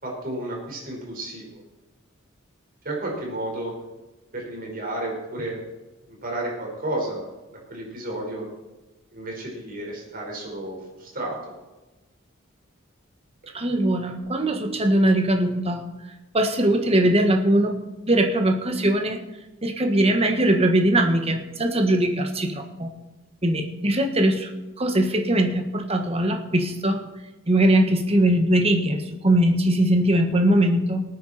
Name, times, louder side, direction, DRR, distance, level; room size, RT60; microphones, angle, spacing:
voice 1, 0.0-1.6 2.8-3.7 4.3-5.6 6.1-7.2 7.5-8.5 9.1-11.5, right 1 dB, 45° right, -1 dB, 4.9 m, -32 dB
voice 2, 13.5-15.9 16.3-17.8 18.1-19.2 19.6-22.9 23.4-24.5 24.8-27.0 27.5-31.0, right 1 dB, 30° right, 5 dB, 1.6 m, -21 dB
18.5 x 9.4 x 4.4 m, 1.1 s
head